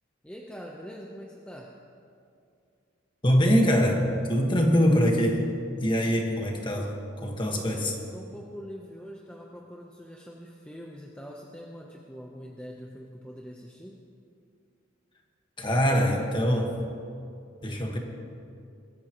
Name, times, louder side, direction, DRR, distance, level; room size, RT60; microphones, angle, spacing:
voice 1, 0.2-1.7 7.5-14.0, equal, 5° left, -2 dB, 0.8 m, -43 dB
voice 2, 3.2-5.5 5.8-7.9 15.6-16.8 17.6-18.0, equal, 25° left, 1 dB, 1.5 m, -23 dB
22.0 x 14.0 x 3.1 m, 2.5 s
head